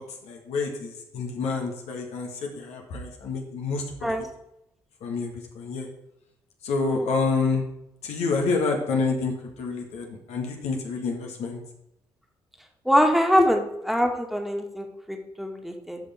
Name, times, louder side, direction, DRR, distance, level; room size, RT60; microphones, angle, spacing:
voice 1, 0.0-4.1 5.0-5.9 6.6-7.6 8.0-11.6 13.4-13.5, left 4 dB, 70° left, 1 dB, 1.6 m, -28 dB
voice 2, 12.9-13.6 13.9-16.0, equal, ahead, 2 dB, 1.9 m, -23 dB
11.5 x 5.5 x 3.6 m, 0.83 s
hypercardioid pair, 45°, 11 cm